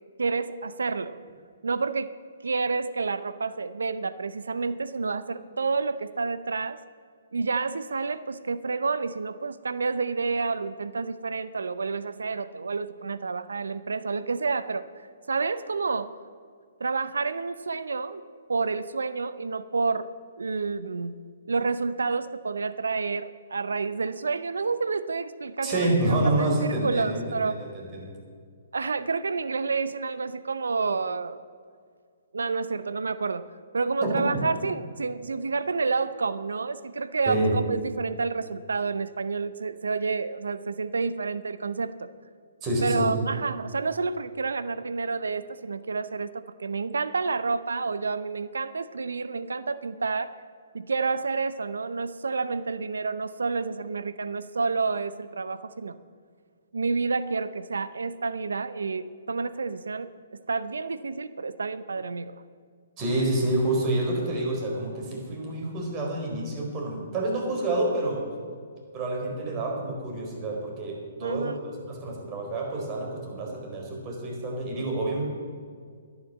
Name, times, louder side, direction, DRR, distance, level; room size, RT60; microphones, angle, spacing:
voice 1, 0.2-1.2 1.6-2.1 2.4-6.8 7.3-14.9 15.3-16.1 16.8-18.2 18.5-20.1 20.4-21.2 21.5-27.6 28.7-31.4 32.3-33.5 33.7-42.1 42.8-50.3 50.7-56.0 56.7-60.1 60.5-62.4 71.2-71.6, right 4 dB, 80° right, 14 dB, 0.6 m, -29 dB
voice 2, 25.6-28.1 34.0-34.2 37.3-37.5 42.6-43.1 63.0-68.2 68.9-71.5 71.8-75.2, right 1 dB, 30° right, 0 dB, 4.4 m, -28 dB
11.5 x 10.5 x 7.5 m, 2.1 s
hypercardioid pair, 135°, 0 cm